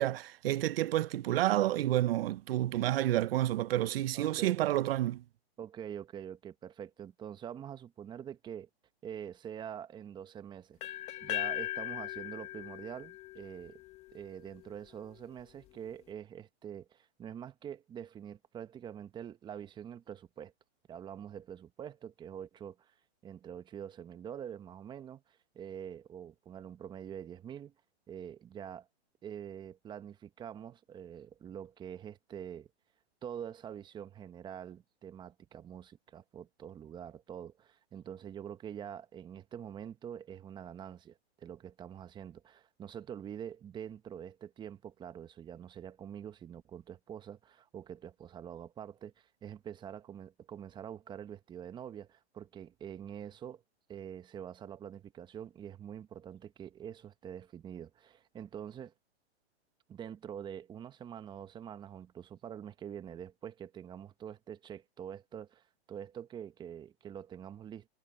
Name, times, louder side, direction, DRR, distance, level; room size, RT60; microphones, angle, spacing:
voice 1, 0.0-5.2, right 14 dB, 60° right, 0.8 m, -29 dB
voice 2, 4.1-4.5 5.6-8.7 9.0-10.8 11.2-13.8 14.1-20.5 20.9-22.9 23.2-27.7 28.1-28.9 29.2-32.7 33.2-53.6 53.9-58.9 59.9-67.9, right 9 dB, 15° right, 0.9 m, -45 dB
sound 1, 10.8-14.7, left 14 dB, 20° left, 0.8 m, -39 dB
hypercardioid pair, 145°, 33 cm